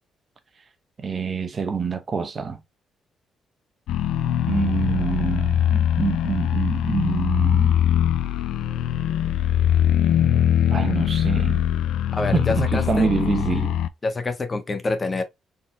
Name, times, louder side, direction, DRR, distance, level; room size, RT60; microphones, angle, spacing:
voice 1, 1.0-2.6 4.5-7.8 10.7-11.6 12.3-13.8, right 5 dB, 40° right, 0.9 m, -26 dB
sound 1, 3.9-13.9, left 10 dB, 80° left, 0.4 m, -22 dB
voice 2, 12.1-13.1 14.0-15.2, left 3 dB, 30° left, 1.0 m, -26 dB
4.0 x 4.0 x 2.2 m
cardioid pair, 90°, 0 cm